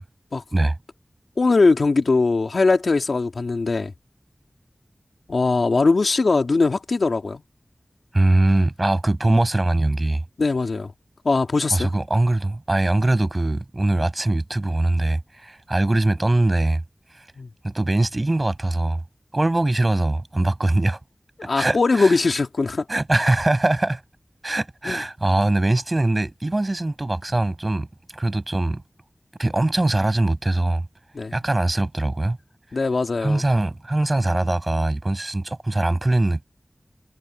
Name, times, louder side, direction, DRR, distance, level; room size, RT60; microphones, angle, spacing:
voice 1, 1.4-3.9 5.3-7.4 10.4-10.9 11.2-11.9 17.4-17.5 21.4-22.9 24.8-25.0 31.1-31.3 32.7-33.4, left 3 dB, 85° left, 2.8 m, -20 dB
voice 2, 8.1-10.2 11.7-16.8 17.1-17.2 17.6-19.0 19.3-21.0 21.5-22.2 22.9-24.0 24.4-27.9 28.1-28.8 29.4-30.8 31.3-32.4 33.2-36.4, right 2 dB, 40° right, 7.2 m, -22 dB
wide cardioid pair, 55°, 0 cm